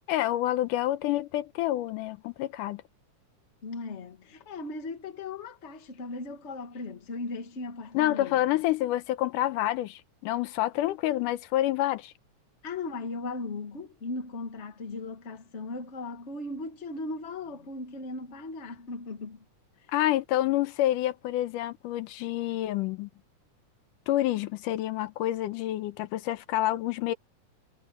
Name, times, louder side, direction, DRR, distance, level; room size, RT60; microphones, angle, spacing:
voice 1, 0.1-2.8 7.9-12.1 19.9-23.1 24.1-27.1, left 14 dB, 85° left, 2.3 m, -28 dB
voice 2, 3.6-8.4 12.6-19.4, left 3 dB, 30° left, 1.5 m, -37 dB
omnidirectional pair, 3.7 m